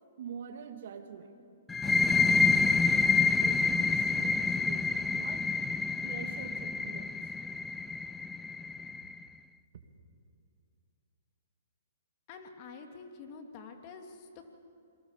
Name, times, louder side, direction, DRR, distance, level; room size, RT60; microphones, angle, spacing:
voice 1, 0.2-1.4 1.8-5.5 6.0-7.3 9.7-9.8, right 7 dB, 60° right, 5 dB, 2.6 m, -46 dB
sound 1, 1.7-9.1, left 4 dB, 10° left, 0.6 m, -28 dB
voice 2, 12.3-14.4, left 5 dB, 40° left, 4 dB, 2.7 m, -47 dB
28.0 x 22.5 x 7.4 m, 2.4 s
hypercardioid pair, 135°, 0 cm